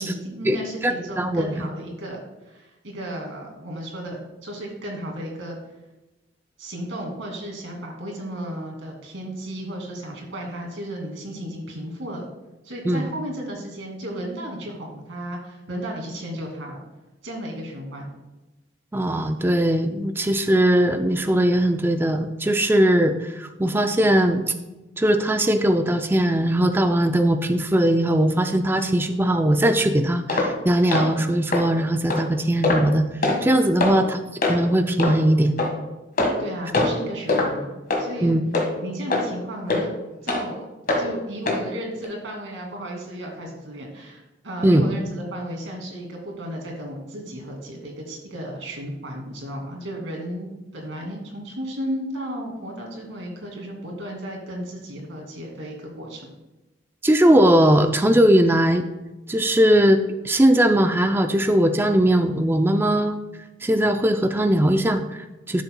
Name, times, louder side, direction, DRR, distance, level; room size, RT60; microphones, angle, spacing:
voice 1, 0.0-5.6 6.6-12.2 12.6-16.8 17.2-18.1 33.8-34.1 36.4-38.4 38.8-40.7 41.0-56.3, equal, 75° right, 0 dB, 2.2 m, -34 dB
voice 2, 0.8-1.5 12.9-13.0 18.9-24.4 25.0-33.1 33.4-34.2 34.5-35.5 38.2-38.4 44.6-44.8 57.0-58.9 59.3-63.2 63.6-65.6, right 1 dB, 10° right, 7 dB, 0.4 m, -19 dB
sound 1, 30.3-30.5 30.9-31.1 31.5-31.6 32.1-32.2 32.6-32.9 33.2-33.4 33.8-33.9 34.4-34.6 35.0-35.1 35.6-35.7 36.2-36.4 36.7-37.0 37.3-37.5 37.9-38.0 38.5-38.7 39.1-39.3 39.7-39.8 40.3-40.4 40.9-41.0 41.5-41.6 42.0-42.1, left 2 dB, 50° left, 1.5 m, -21 dB
11.5 x 6.9 x 2.2 m, 1.1 s
head